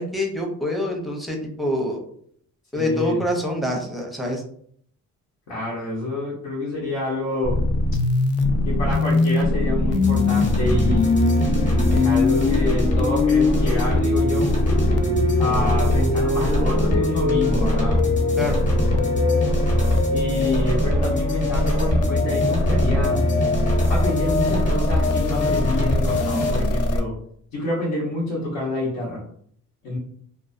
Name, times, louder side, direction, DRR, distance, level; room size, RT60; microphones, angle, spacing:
voice 1, 0.0-2.0 2.7-4.4 18.4-18.6, left 1 dB, ahead, 1 dB, 0.6 m, -25 dB
voice 2, 2.7-3.2 5.5-7.6 8.6-11.2 11.9-14.5 15.4-18.0 20.1-23.2 23.9-27.1 27.5-29.2 29.8-30.0, left 1 dB, 85° left, -6 dB, 0.9 m, -27 dB
sound 1, 7.4-27.0, left 2 dB, 55° left, 0.4 m, -22 dB
sound 2, 10.0-26.6, left 1 dB, 25° left, 0.9 m, -24 dB
sound 3, 11.0-17.5, right 1 dB, 65° right, 0.4 m, -37 dB
2.3 x 2.2 x 2.5 m, 0.63 s
cardioid pair, 90°, 30 cm